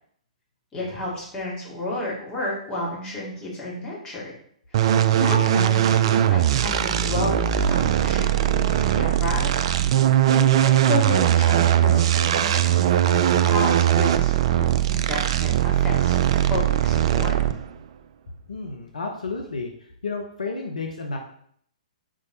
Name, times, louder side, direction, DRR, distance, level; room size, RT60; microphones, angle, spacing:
voice 1, 0.7-4.2 4.7-9.5 10.3-16.2 16.5-17.4, left 1 dB, 15° left, -6 dB, 2.9 m, -31 dB
sound 1, 4.7-17.7, right 11 dB, 50° right, 0.4 m, -20 dB
voice 2, 18.5-19.7 20.0-21.2, left 3 dB, 75° left, 2 dB, 0.9 m, -32 dB
5.1 x 4.8 x 4.2 m, 0.64 s
figure-of-eight pair, 120°, 4 cm